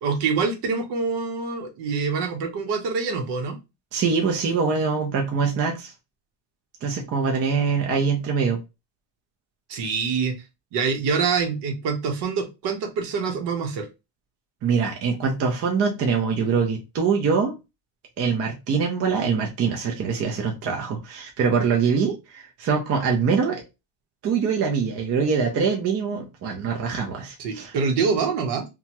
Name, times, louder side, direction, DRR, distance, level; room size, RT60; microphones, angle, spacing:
voice 1, 0.0-3.6 9.7-10.3 10.7-13.9 27.4-28.6, right 5 dB, 55° right, 1.0 m, -25 dB
voice 2, 3.9-5.9 6.8-8.6 14.6-17.5 18.2-23.6 24.2-27.7, right 5 dB, 30° right, 0.5 m, -24 dB
2.8 x 2.3 x 2.8 m
cardioid pair, 135°, 49 cm